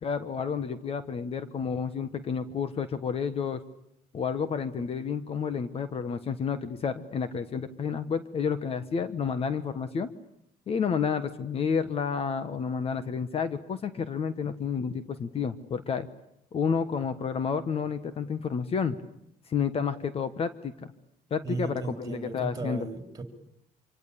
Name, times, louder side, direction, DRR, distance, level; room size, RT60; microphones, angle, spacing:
voice 1, 0.0-3.6 4.1-10.1 10.7-16.1 16.5-19.0 19.5-20.7 21.3-22.9, left 6 dB, 40° left, 12 dB, 1.3 m, -30 dB
voice 2, 21.4-23.2, right 3 dB, 25° right, 6 dB, 3.9 m, -36 dB
26.0 x 25.5 x 8.6 m, 0.76 s
cardioid pair, 140°, 15 cm